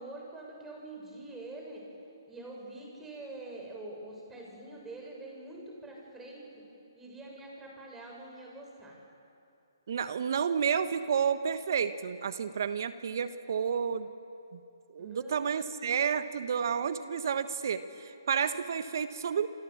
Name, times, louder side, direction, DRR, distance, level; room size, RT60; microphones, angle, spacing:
voice 1, 0.0-1.8 2.3-6.6 6.9-9.0 15.0-15.4, right 2 dB, 10° right, -1 dB, 7.1 m, -45 dB
voice 2, 9.9-14.1 14.5-14.6 14.9-19.5, right 7 dB, 55° right, 11 dB, 1.3 m, -30 dB
28.0 x 25.5 x 7.4 m, 2.6 s
figure-of-eight pair, 140°, 2 cm